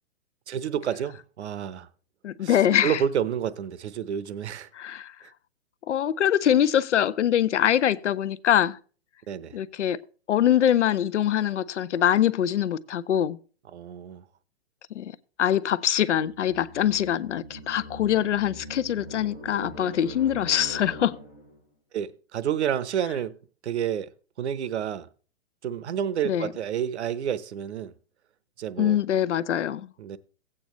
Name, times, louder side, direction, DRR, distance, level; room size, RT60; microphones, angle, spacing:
voice 1, 0.5-1.9 2.4-4.7 5.2-5.3 9.3-9.6 13.7-14.2 21.9-23.4 23.6-24.1 24.4-25.1 25.6-27.9 28.6-29.0 30.0-30.2, right 9 dB, 70° right, 0.9 m, -29 dB
voice 2, 2.2-3.0 4.7-5.1 5.9-8.8 9.5-10.0 10.3-13.4 14.9-21.2 26.2-26.5 28.8-29.9, left 10 dB, 90° left, 0.8 m, -24 dB
sound 1, 16.2-21.6, equal, 10° left, 0.4 m, -42 dB
16.0 x 8.7 x 3.1 m
hypercardioid pair, 175°, 34 cm